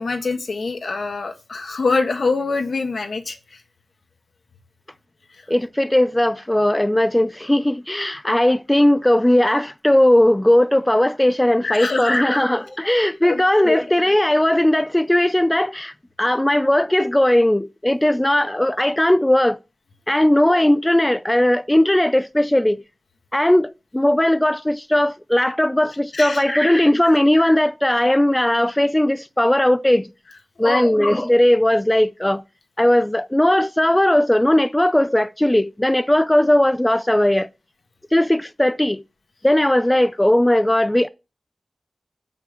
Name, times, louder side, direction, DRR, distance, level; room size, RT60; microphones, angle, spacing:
voice 1, 0.0-3.4 11.6-12.2 13.2-13.8 26.1-26.4 30.6-31.0, left 3 dB, 75° left, 1.4 m, -24 dB
voice 2, 5.5-19.6 20.1-22.8 23.3-30.1 30.6-32.4 32.8-37.5 38.1-39.0 39.4-41.1, left 1 dB, 15° left, 0.4 m, -18 dB
7.4 x 5.8 x 6.5 m
wide cardioid pair, 85°, 0 cm